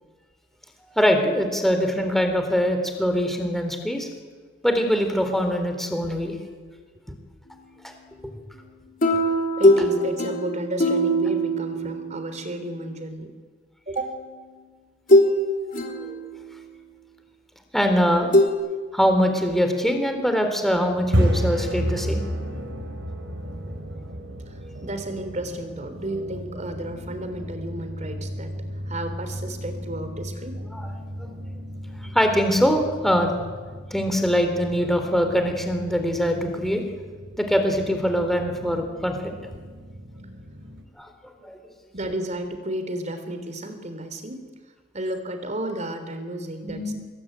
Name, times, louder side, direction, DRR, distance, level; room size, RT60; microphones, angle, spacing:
voice 1, 0.9-4.1 4.6-6.3 16.0-16.2 17.7-18.3 18.9-22.2 30.7-30.8 31.2-31.3 32.1-33.4 33.9-36.8 37.4-39.3 41.0-41.1 41.4-41.6 46.6-46.9, equal, ahead, 5 dB, 3.8 m, -23 dB
sound 1, 9.0-12.6 14.0-14.1 15.1-15.4 15.7-16.6 18.3-18.5, equal, 45° left, 3.4 m, -21 dB
voice 2, 9.6-13.4 13.9-14.2 24.5-28.5 28.9-30.6 41.9-44.5 44.9-46.9, right 1 dB, 40° right, 8 dB, 3.6 m, -32 dB
sound 2, 20.9-40.8, equal, 75° right, 4.4 m, -32 dB
25.5 x 21.5 x 9.4 m, 1.5 s
head